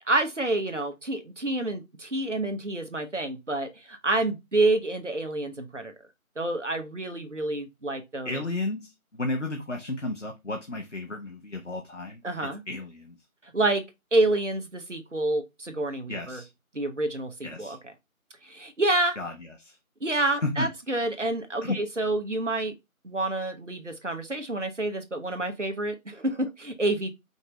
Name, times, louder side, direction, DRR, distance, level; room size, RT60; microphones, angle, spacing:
voice 1, 0.1-5.9 6.4-8.4 12.2-12.6 13.4-13.8 14.1-16.4 16.7-17.9 18.4-19.2 20.0-22.7 23.0-27.1, right 2 dB, 55° right, 0.9 m, -28 dB
voice 2, 8.2-8.9 9.2-12.2 12.7-13.2 16.1-16.5 17.4-17.8 19.2-19.3 19.6-19.7 20.4-20.7 21.6-21.8, left 2 dB, 55° left, 0.7 m, -32 dB
5.2 x 2.5 x 3.0 m
figure-of-eight pair, 175°, 43 cm